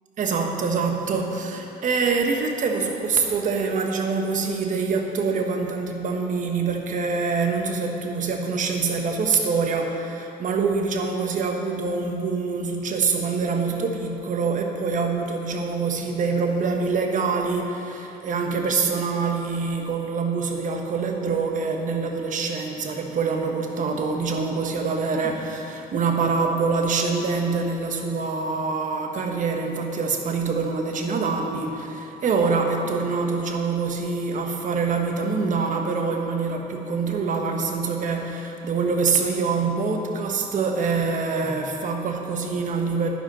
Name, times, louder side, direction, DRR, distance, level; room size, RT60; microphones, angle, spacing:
voice 1, 0.2-43.1, right 4 dB, 50° right, 3 dB, 1.3 m, -25 dB
10.5 x 10.5 x 4.3 m, 2.9 s
cardioid pair, 110°, 17 cm